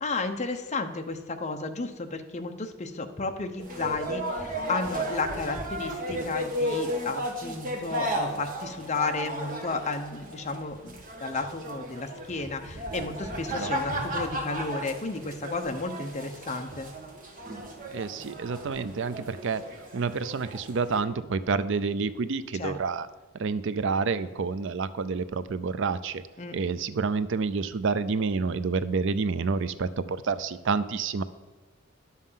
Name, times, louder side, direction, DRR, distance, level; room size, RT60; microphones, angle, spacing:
voice 1, 0.0-16.9 22.6-22.8 26.4-26.6, left 3 dB, 35° left, 5 dB, 0.9 m, -33 dB
sound 1, 3.6-21.0, equal, 45° right, 1.8 m, -34 dB
voice 2, 17.9-19.6 19.9-23.1 23.4-26.2 26.5-31.2, right 4 dB, 65° right, 14 dB, 0.5 m, -29 dB
11.0 x 7.4 x 5.7 m, 1.3 s
head